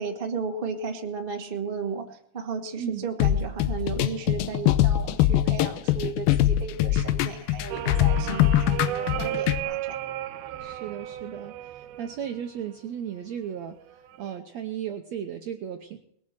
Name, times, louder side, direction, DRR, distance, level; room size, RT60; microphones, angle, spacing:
voice 1, 0.0-10.0, right 5 dB, 40° right, 2 dB, 0.8 m, -34 dB
voice 2, 2.8-3.1 10.6-16.0, right 9 dB, 75° right, 4 dB, 1.7 m, -35 dB
sound 1, 3.2-9.6, left 13 dB, 80° left, 2.6 m, -23 dB
sound 2, 7.7-12.7 13.9-14.4, right 12 dB, 90° right, 2.7 m, -34 dB
20.5 x 7.4 x 7.5 m, 0.71 s
omnidirectional pair, 4.3 m